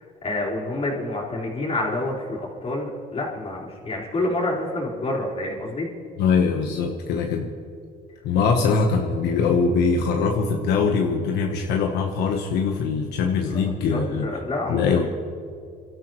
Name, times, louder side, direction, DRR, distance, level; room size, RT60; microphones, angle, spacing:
voice 1, 0.2-5.9 13.4-13.6 13.9-15.1, left 2 dB, 35° left, -3 dB, 4.2 m, -28 dB
voice 2, 6.2-7.5 8.2-14.3 14.7-15.1, left 5 dB, 80° left, 2 dB, 1.3 m, -22 dB
28.0 x 13.0 x 3.2 m, 2.3 s
cardioid pair, 110°, 17 cm